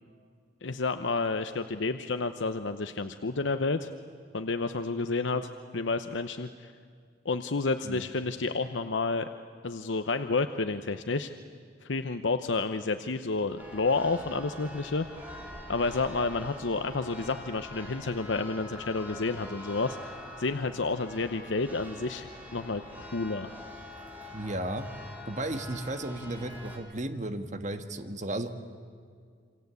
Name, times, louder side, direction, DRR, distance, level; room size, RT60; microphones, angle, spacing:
voice 1, 0.6-3.9 4.3-6.7 7.2-9.3 9.6-11.3 11.8-15.1 15.7-23.5, left 3 dB, 85° left, 9 dB, 0.9 m, -30 dB
Church bell, 13.6-26.8, left 1 dB, 10° right, 4.0 m, -45 dB
voice 2, 24.3-24.8 25.3-28.6, right 1 dB, 40° right, 7 dB, 1.6 m, -34 dB
28.0 x 25.5 x 8.2 m, 2.1 s
head